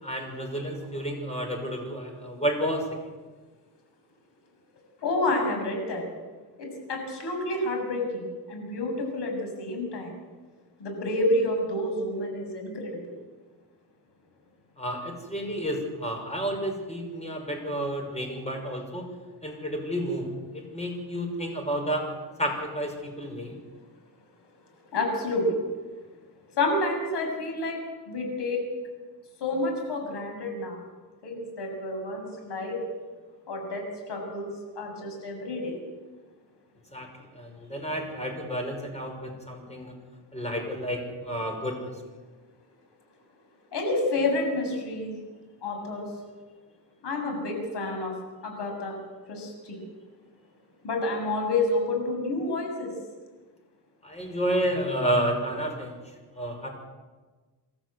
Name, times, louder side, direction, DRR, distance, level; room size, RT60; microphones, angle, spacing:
voice 1, 0.0-2.8 14.8-19.1 19.4-20.3 20.5-22.1 22.4-23.5 36.9-37.1 37.3-39.9 40.3-41.9 54.0-55.9 56.3-56.7, equal, 15° left, 3 dB, 6.2 m, -30 dB
voice 2, 5.0-6.0 6.6-8.2 8.5-10.1 10.8-13.0 24.9-25.6 26.6-27.8 28.1-28.6 29.4-30.8 31.2-32.8 33.5-33.8 34.1-34.5 34.8-35.8 43.7-45.2 45.6-46.1 47.0-48.1 48.4-48.9 49.3-49.8 50.8-52.9, left 2 dB, 80° left, 2 dB, 7.2 m, -29 dB
27.0 x 14.0 x 8.1 m, 1.3 s
cardioid pair, 115°, 40 cm